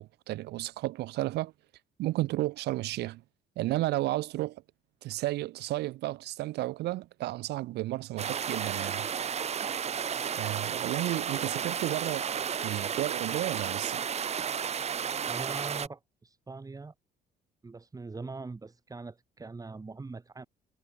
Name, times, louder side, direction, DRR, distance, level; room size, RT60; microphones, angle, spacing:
voice 1, 0.0-1.5 2.0-3.2 3.6-4.6 5.0-9.1 10.3-14.1, right 17 dB, 80° right, 2.3 m, -33 dB
sound 1, 8.2-15.9, right 7 dB, 40° right, 1.8 m, -33 dB
voice 2, 15.3-16.9 17.6-20.5, right 3 dB, 20° right, 5.7 m, -42 dB
cardioid pair, 110°, 17 cm